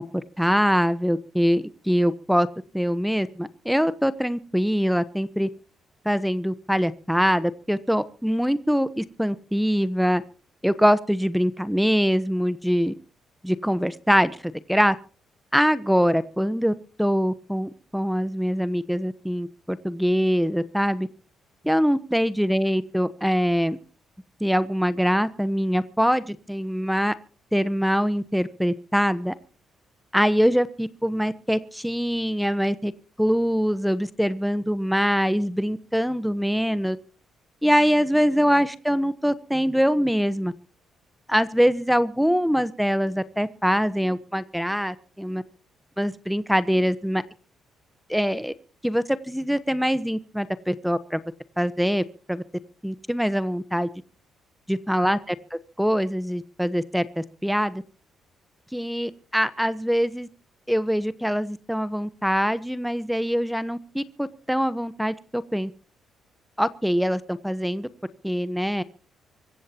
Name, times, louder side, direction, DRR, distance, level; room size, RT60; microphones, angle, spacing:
voice 1, 0.1-2.5 2.7-5.5 6.0-10.2 10.6-12.9 13.4-14.9 15.5-21.1 21.6-23.8 24.4-27.1 27.5-29.3 30.1-32.9 33.2-37.0 37.6-40.5 41.3-45.4 46.0-47.2 48.1-48.5 48.8-51.2 51.6-52.0 52.3-52.4 52.8-53.9 54.7-55.3 55.8-57.8 58.7-60.3 60.7-65.7 66.6-67.9 68.2-68.8, equal, ahead, 1.0 m, -23 dB
25.0 x 14.5 x 2.9 m
cardioid pair, 90°, 0 cm